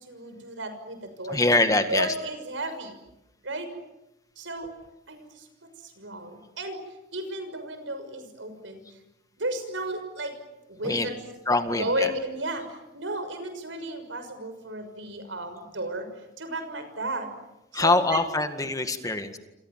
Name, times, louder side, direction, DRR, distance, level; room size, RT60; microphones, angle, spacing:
voice 1, 0.0-1.4 1.9-2.9 3.4-3.7 4.4-4.7 5.1-5.2 6.0-6.8 7.1-8.8 9.4-10.3 10.8-11.1 11.8-12.6 12.9-16.1 16.4-17.3 17.8-18.2, right 1 dB, 75° right, 8 dB, 6.3 m, -33 dB
voice 2, 1.3-2.1 10.8-11.1 11.5-12.1 17.7-19.4, left 2 dB, 20° left, 8 dB, 1.9 m, -24 dB
28.0 x 27.0 x 7.5 m, 0.95 s
head